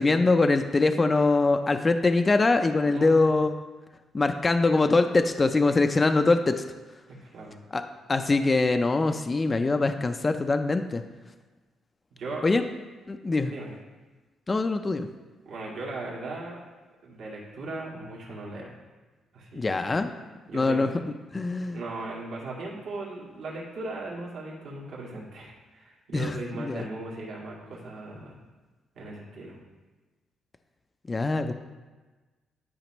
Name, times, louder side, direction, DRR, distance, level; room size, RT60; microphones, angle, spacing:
voice 1, 0.0-3.5 4.1-6.6 7.7-7.8 8.1-11.0 12.4-12.6 13.1-13.5 14.5-15.1 19.5-20.1 20.5-20.9 21.3-21.8 26.1-26.9 31.1-31.5, left 3 dB, 25° left, 7 dB, 0.4 m, -23 dB
voice 2, 7.1-7.6 12.1-12.5 13.4-13.7 15.5-16.6 17.0-18.7 19.3-20.0 20.5-20.8 21.7-28.4 29.0-29.6, right 2 dB, 75° right, -4 dB, 2.2 m, -38 dB
12.0 x 5.0 x 3.0 m, 1.3 s
cardioid pair, 125°, 0 cm